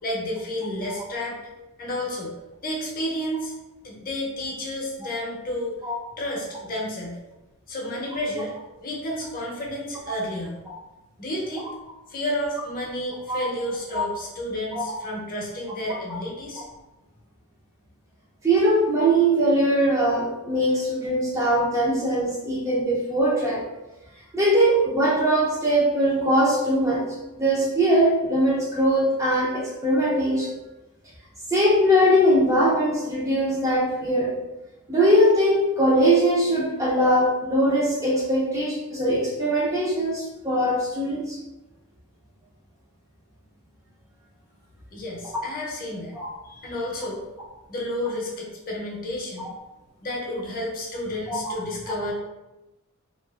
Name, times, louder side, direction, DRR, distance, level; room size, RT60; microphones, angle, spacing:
voice 1, 0.0-1.4 1.8-2.3 2.6-3.5 3.8-5.8 6.2-7.2 7.7-8.5 8.8-10.6 11.2-11.7 12.1-16.6 44.9-46.1 46.4-47.2 47.7-49.5 50.0-52.1, left 1 dB, 40° left, -3 dB, 0.6 m, -31 dB
voice 2, 18.4-23.6 24.3-27.0 27.3-30.5 31.5-34.3 34.9-41.4 46.1-46.3 51.3-51.6, right 1 dB, 15° right, -4 dB, 0.4 m, -21 dB
2.5 x 2.4 x 2.3 m, 1.0 s
head